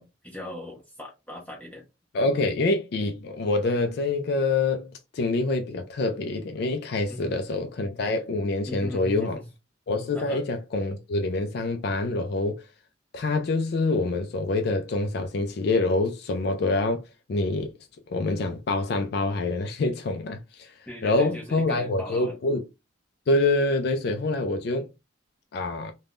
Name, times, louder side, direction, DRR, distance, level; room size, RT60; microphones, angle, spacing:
voice 1, 0.0-1.8 7.1-7.4 8.7-9.4 10.1-10.4 20.9-22.4, left 1 dB, 5° left, 0.8 m, -39 dB
voice 2, 2.1-9.4 9.9-12.6 13.1-17.0 17.3-17.7 18.1-20.7 21.0-22.6 23.3-24.9 25.5-25.9, left 2 dB, 55° left, 0.3 m, -26 dB
3.4 x 2.2 x 2.4 m
head